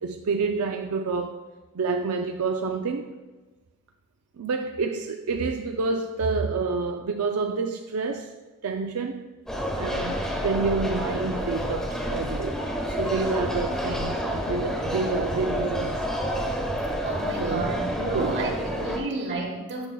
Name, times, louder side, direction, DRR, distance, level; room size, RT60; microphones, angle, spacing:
voice 1, 0.0-1.4 1.7-3.1 4.4-8.3 8.6-9.3 9.8-12.6 13.0-16.1 17.4-17.8 18.1-18.7, right 4 dB, 70° right, 0.4 m, -28 dB
sound 1, 9.5-19.0, equal, 5° left, 1.1 m, -29 dB
sound 2, 9.9-10.6 12.8-13.7, left 1 dB, 85° left, 1.5 m, -47 dB
voice 2, 17.0-19.9, right 2 dB, 55° right, 1.4 m, -31 dB
10.5 x 6.0 x 2.3 m
head